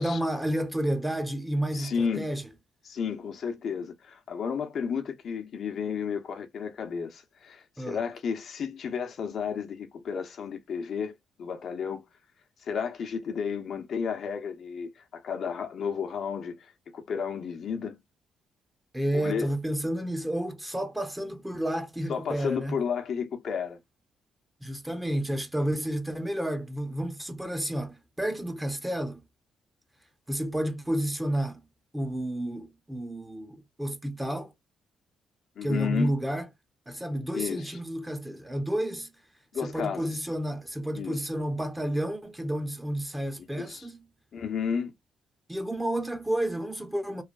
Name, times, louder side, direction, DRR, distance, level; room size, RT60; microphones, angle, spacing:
voice 1, 0.0-2.4 7.8-8.0 18.9-22.8 24.6-29.2 30.3-31.6 31.9-34.5 35.6-36.5 36.9-39.1 39.6-44.0 45.5-47.2, right 1 dB, 10° right, 0.7 m, -31 dB
voice 2, 1.7-2.3 2.8-12.0 12.6-18.0 19.1-19.5 22.1-23.8 35.6-36.1 37.3-37.8 39.5-40.2 40.9-41.3 43.4-43.9 44.3-44.9, left 6 dB, 65° left, 0.8 m, -32 dB
3.1 x 2.2 x 2.4 m
supercardioid pair, 60°, 0 cm